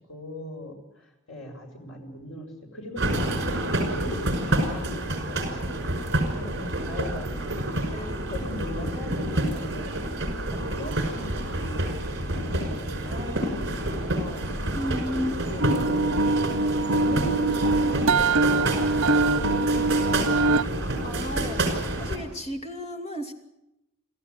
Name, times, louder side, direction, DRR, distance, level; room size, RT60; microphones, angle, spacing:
voice 1, 0.1-5.8 6.3-7.8 8.2-14.5 15.1-16.7 17.0-19.9, equal, 70° left, 2 dB, 6.7 m, -39 dB
sound 1, 3.0-22.2, right 1 dB, 55° right, 5.5 m, -28 dB
voice 2, 6.1-6.5 7.9-8.3 14.7-15.3 21.0-21.6 22.0-23.3, left 1 dB, 35° left, 2 dB, 2.6 m, -33 dB
sound 2, 15.6-20.6, right 3 dB, 85° right, 0.9 m, -23 dB
28.5 x 14.5 x 9.6 m, 0.88 s
head